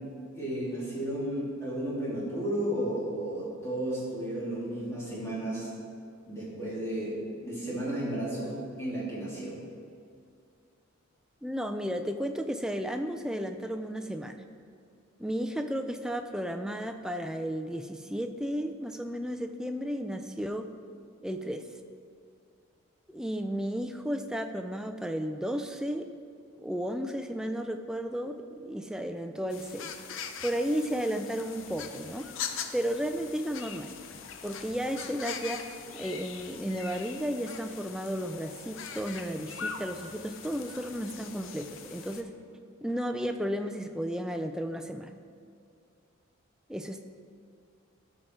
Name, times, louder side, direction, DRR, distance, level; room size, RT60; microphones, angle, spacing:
voice 1, 0.3-5.7 6.3-7.1 7.4-9.5, right 1 dB, 15° left, -8 dB, 2.5 m, -33 dB
voice 2, 11.4-14.4 15.2-20.7 21.2-21.7 23.1-26.0 26.6-29.9 30.4-32.3 32.7-33.9 34.4-35.6 35.9-42.3 42.8-45.1 46.7-47.0, equal, 5° right, 7 dB, 0.3 m, -33 dB
sound 1, 29.5-42.2, left 7 dB, 70° left, 0.6 m, -42 dB
13.0 x 5.1 x 4.5 m, 2.4 s
head